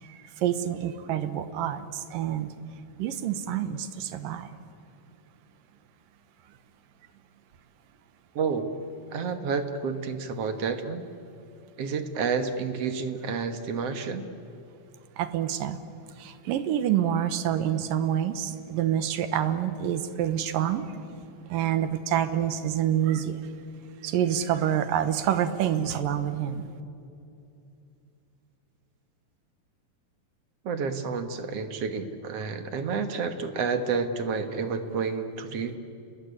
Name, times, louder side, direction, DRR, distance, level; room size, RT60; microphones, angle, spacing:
voice 1, 0.0-2.5 3.0-4.5 15.2-15.8 16.2-21.0 21.5-23.4 24.0-26.7, right 10 dB, 80° right, 11 dB, 2.9 m, -27 dB
voice 2, 8.4-8.7 9.1-11.0 11.8-14.3 30.6-35.8, right 5 dB, 55° right, 8 dB, 2.0 m, -30 dB
29.5 x 20.5 x 9.9 m, 2.7 s
omnidirectional pair, 3.9 m